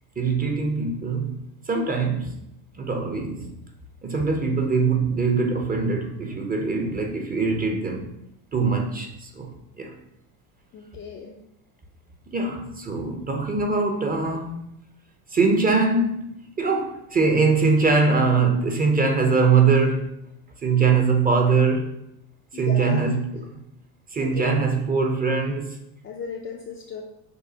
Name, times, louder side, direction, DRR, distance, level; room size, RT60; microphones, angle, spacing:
voice 1, 0.2-1.4 1.7-2.3 2.8-3.5 4.0-8.1 8.5-9.5 9.8-9.9 12.3-14.7 15.3-20.1 20.6-21.9 22.5-23.6 24.1-25.8, right 4 dB, 20° right, 0.6 m, -22 dB
voice 2, 10.7-11.3 22.5-23.0 24.2-24.5 26.0-27.0, left 6 dB, 30° left, 0.4 m, -35 dB
6.4 x 2.4 x 2.8 m
supercardioid pair, 100°, 49 cm